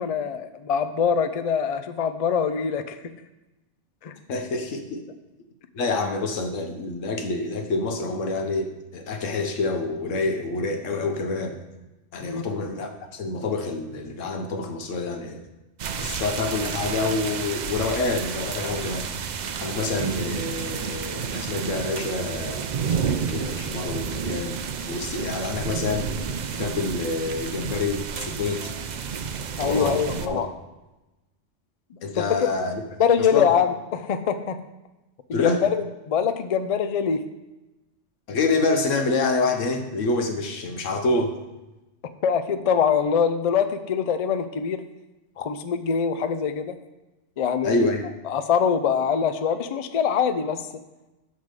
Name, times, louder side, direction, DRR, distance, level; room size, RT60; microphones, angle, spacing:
voice 1, 0.0-3.0 4.0-4.1 12.2-12.4 29.6-30.5 33.0-34.6 35.3-37.2 42.2-44.8 45.4-46.8 47.4-47.9 48.3-50.6, left 7 dB, 55° left, 10 dB, 0.4 m, -24 dB
voice 2, 4.3-5.0 5.7-11.6 12.1-15.5 16.0-19.1 19.6-24.6 24.9-26.1 26.5-28.7 29.5-30.5 32.0-32.8 33.2-33.5 35.3-35.7 38.3-41.3 47.6-48.1, left 3 dB, 90° left, 5 dB, 1.3 m, -27 dB
sound 1, 15.8-30.3, right 6 dB, 60° right, 0.5 m, -31 dB
9.5 x 3.7 x 6.7 m, 1.0 s
omnidirectional pair, 1.3 m